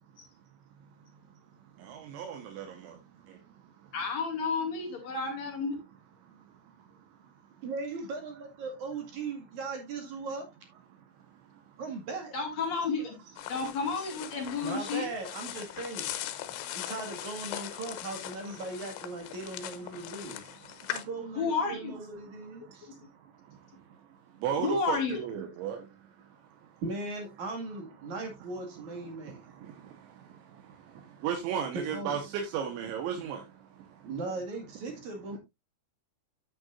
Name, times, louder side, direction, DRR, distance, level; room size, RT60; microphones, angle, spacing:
voice 1, 1.8-3.9 6.2-7.4 10.9-11.8 16.5-16.8 18.4-18.6 20.0-20.1 20.6-21.0 22.2-26.8 28.0-28.1 29.0-34.1 35.3-35.4, right 8 dB, 85° right, 3.6 m, -38 dB
voice 2, 3.9-5.7 12.3-13.2 13.5-15.1 21.4-22.0 22.8-22.9 24.6-25.2, left 4 dB, 45° left, 2.8 m, -31 dB
voice 3, 7.6-10.5 11.8-12.3 14.6-16.2 16.7-20.5 20.9-22.9 26.8-29.4 31.7-32.2 34.0-35.4, right 3 dB, 50° right, 2.8 m, -38 dB
sound 1, 13.4-21.0, left 13 dB, 85° left, 3.3 m, -40 dB
9.6 x 9.0 x 2.5 m
omnidirectional pair, 5.3 m